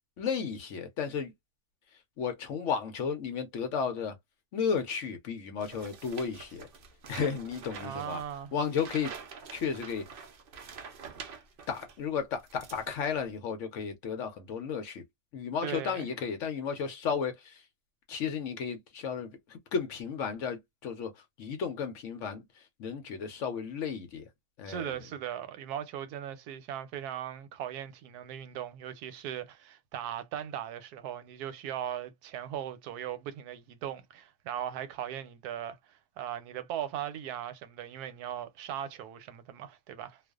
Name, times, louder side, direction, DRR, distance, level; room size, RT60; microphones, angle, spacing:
voice 1, 0.2-1.3 2.2-4.1 4.5-6.7 7.1-8.2 8.5-9.2 9.5-10.0 11.7-15.0 15.3-17.6 18.1-21.1 21.4-24.2 24.6-24.9, left 6 dB, 65° left, 0.8 m, -33 dB
sound 1, 5.6-12.0 12.3-13.3, right 6 dB, 65° right, 0.5 m, -46 dB
voice 2, 7.8-8.5 15.6-16.1 24.7-40.2, right 10 dB, 90° right, 1.1 m, -38 dB
2.4 x 2.3 x 2.2 m
omnidirectional pair, 1.6 m